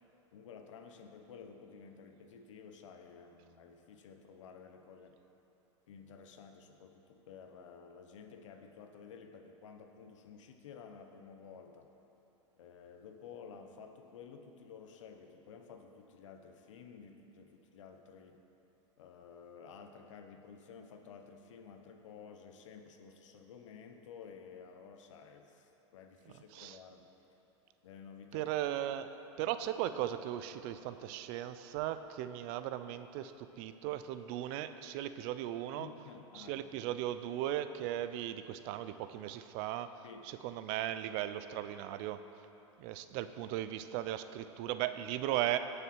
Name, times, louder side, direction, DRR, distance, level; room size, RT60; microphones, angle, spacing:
voice 1, 0.3-5.2 5.9-11.9 12.6-18.4 19.0-27.1 27.8-28.5 35.8-36.6 40.0-40.3, left 6 dB, 80° left, 6 dB, 1.1 m, -53 dB
voice 2, 28.3-35.9 36.3-39.9 40.3-42.2 42.8-45.6, right 12 dB, 55° right, 11 dB, 0.6 m, -37 dB
17.5 x 6.6 x 4.7 m, 3.0 s
hypercardioid pair, 105°, 16 cm